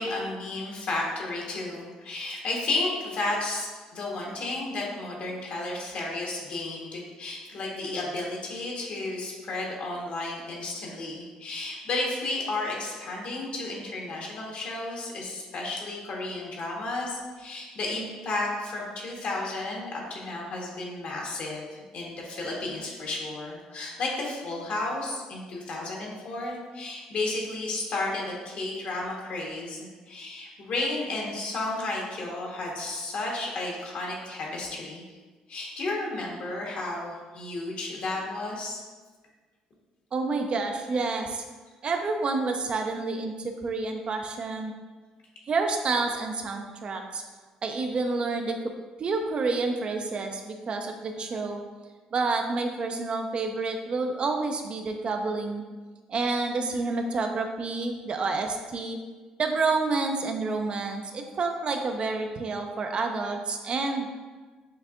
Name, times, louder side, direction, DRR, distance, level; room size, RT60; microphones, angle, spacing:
voice 1, 0.0-35.0 35.5-38.8, left 2 dB, 60° left, -2 dB, 1.2 m, -33 dB
voice 2, 40.1-41.4 41.8-44.7 45.5-47.2 47.6-48.6 49.0-51.6 52.1-55.6 56.1-59.0 59.4-64.1, right 3 dB, 45° right, 4 dB, 0.5 m, -29 dB
6.5 x 2.6 x 2.4 m, 1.3 s
supercardioid pair, 75°, 2 cm